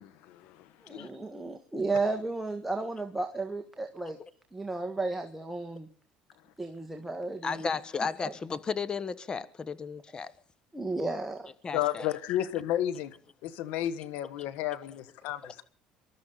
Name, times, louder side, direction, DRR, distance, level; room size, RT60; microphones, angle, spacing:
voice 1, 0.0-1.1 11.7-13.2 13.4-15.6, left 12 dB, 75° left, 1.4 m, -33 dB
voice 2, 0.8-4.2 4.5-5.9 6.6-8.3 10.7-11.5, right 3 dB, 5° right, 1.5 m, -34 dB
voice 3, 7.4-10.3 11.6-12.1, left 5 dB, 30° left, 1.2 m, -34 dB
24.0 x 13.0 x 4.1 m
supercardioid pair, 105°, 3 cm